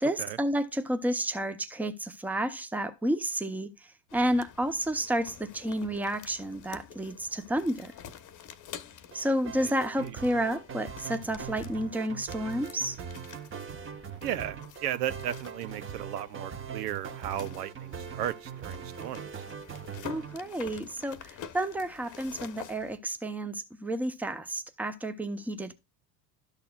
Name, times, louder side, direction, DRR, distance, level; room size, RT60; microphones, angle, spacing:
voice 1, 0.0-3.7 4.1-7.9 9.1-13.0 20.0-25.7, right 1 dB, 5° right, 0.7 m, -31 dB
sound 1, 4.1-23.0, left 8 dB, 40° left, 1.0 m, -49 dB
sound 2, 9.1-20.4, right 7 dB, 25° right, 1.1 m, -41 dB
voice 2, 14.2-19.5, right 11 dB, 85° right, 0.7 m, -35 dB
12.0 x 6.7 x 2.4 m
hypercardioid pair, 85°, 47 cm